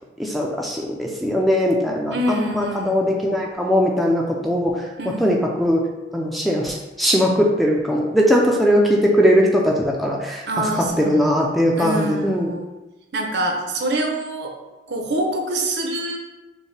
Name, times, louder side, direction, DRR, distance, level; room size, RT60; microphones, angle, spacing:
voice 1, 0.2-5.8 6.1-10.7 11.0-12.5, equal, ahead, -1 dB, 0.4 m, -20 dB
voice 2, 2.1-3.1 5.0-5.4 10.5-12.7 13.1-14.5 14.9-16.2, right 1 dB, 65° right, 2 dB, 0.6 m, -26 dB
5.3 x 2.2 x 3.2 m, 1.1 s
head